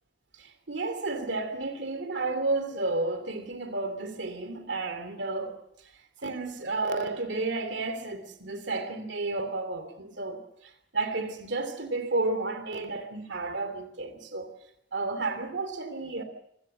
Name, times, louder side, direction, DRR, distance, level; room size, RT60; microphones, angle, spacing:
voice 1, 0.4-5.6 6.2-14.5 14.9-16.2, right 3 dB, 65° right, 2.8 m, -32 dB
25.0 x 17.5 x 7.9 m
head